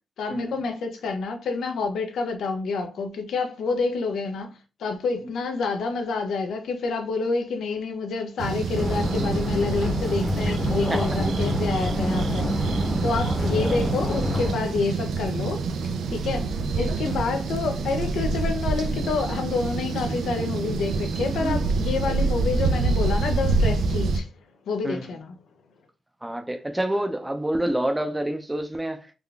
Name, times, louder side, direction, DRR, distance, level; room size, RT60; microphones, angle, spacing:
voice 1, 0.2-4.5 4.8-15.7 16.1-24.3 24.7-25.3, left 4 dB, 85° left, 0.6 m, -28 dB
sound 1, 8.4-24.2, right 4 dB, 90° right, 0.4 m, -27 dB
sound 2, 8.8-14.5, left 1 dB, 20° left, 0.8 m, -27 dB
voice 2, 26.2-29.1, right 1 dB, 10° right, 0.4 m, -28 dB
3.7 x 2.3 x 3.3 m
wide cardioid pair, 150°, 0 cm